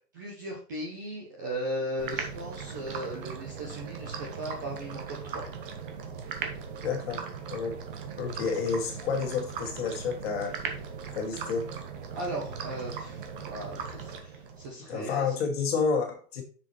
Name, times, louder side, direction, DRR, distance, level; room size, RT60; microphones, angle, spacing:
voice 1, 0.1-5.4 12.1-15.3, right 1 dB, 15° right, 0.6 m, -37 dB
sound 1, 2.0-14.7, right 6 dB, 35° right, 1.4 m, -38 dB
voice 2, 6.8-7.8 8.2-10.6 11.2-11.7 14.9-16.4, left 5 dB, 40° left, 2.3 m, -30 dB
8.1 x 6.6 x 3.2 m
hypercardioid pair, 165°, 47 cm